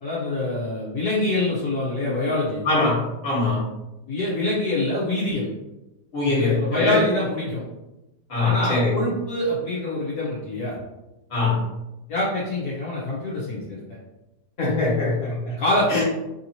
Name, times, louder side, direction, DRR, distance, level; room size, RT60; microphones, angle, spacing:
voice 1, 0.0-2.6 4.1-5.5 6.3-7.6 8.4-10.7 12.1-13.8 15.6-16.0, left 2 dB, 70° left, -7 dB, 1.4 m, -25 dB
voice 2, 2.6-3.0 3.2-3.6 6.1-7.0 8.3-8.9 11.3-11.5 14.6-15.6 15.9-16.0, left 3 dB, 40° left, -6 dB, 1.7 m, -22 dB
3.5 x 2.9 x 2.7 m, 0.98 s
omnidirectional pair, 1.8 m